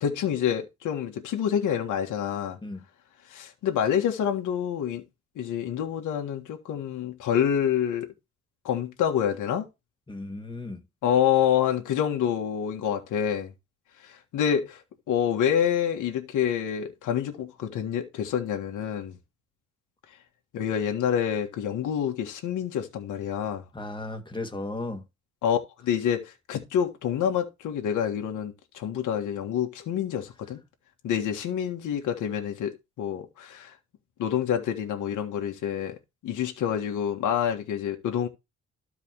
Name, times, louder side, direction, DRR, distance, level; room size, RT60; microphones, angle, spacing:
voice 1, 0.0-2.6 3.3-5.0 5.3-8.1 8.6-9.7 11.0-13.5 14.0-14.8 15.1-19.2 20.5-23.6 25.4-30.6 31.0-32.7 33.0-33.7 34.2-35.9 36.2-38.3, left 9 dB, 80° left, 1.7 m, -27 dB
voice 2, 10.1-10.8 23.7-25.0, left 2 dB, 15° left, 1.7 m, -35 dB
12.5 x 4.8 x 3.1 m
cardioid pair, 90°, 30 cm